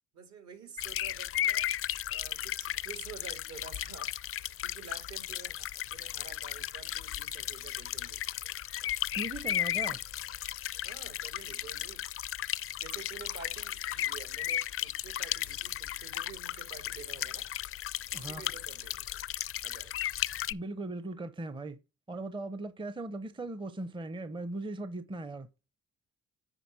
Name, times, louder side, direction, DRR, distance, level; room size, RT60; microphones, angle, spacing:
voice 1, 0.1-1.7 2.1-8.2 10.8-12.1 12.8-17.5 18.0-19.1 19.6-20.0, right 6 dB, 65° right, 2.3 m, -49 dB
sound 1, 0.8-20.5, left 12 dB, 50° left, 0.4 m, -35 dB
voice 2, 9.1-10.0 18.1-18.4 20.5-21.8 22.1-25.5, right 2 dB, 15° right, 0.6 m, -38 dB
9.9 x 4.2 x 4.9 m
cardioid pair, 90°, 30 cm